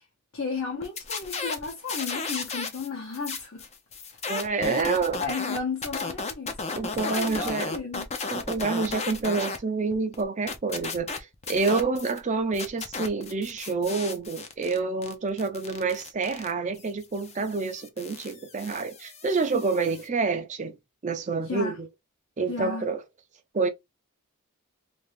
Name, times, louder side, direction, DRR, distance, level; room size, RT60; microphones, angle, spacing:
voice 1, 0.3-3.6 4.5-4.9 5.2-8.1 21.5-21.7 22.5-22.9, left 4 dB, 60° left, 1.0 m, -34 dB
sound 1, 0.8-2.9 3.1-9.6 9.9-12.2 12.5-20.1, left 4 dB, 30° left, 0.6 m, -35 dB
voice 2, 4.2-5.2 6.8-7.7 8.3-20.8 21.0-21.9 22.4-23.0 23.5-23.7, right 4 dB, 35° right, 0.5 m, -28 dB
2.8 x 2.6 x 3.3 m
head